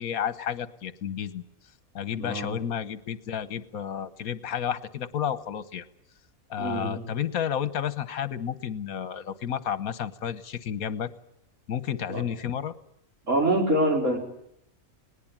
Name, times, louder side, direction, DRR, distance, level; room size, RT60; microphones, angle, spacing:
voice 1, 0.0-1.4 1.9-5.9 6.5-11.1 11.7-12.7, left 9 dB, 75° left, 15 dB, 1.5 m, -31 dB
voice 2, 2.2-2.5 6.6-7.0 12.1-12.2 13.2-14.2, right 1 dB, 55° right, 2 dB, 4.8 m, -25 dB
20.0 x 19.5 x 8.7 m, 0.77 s
omnidirectional pair, 1.5 m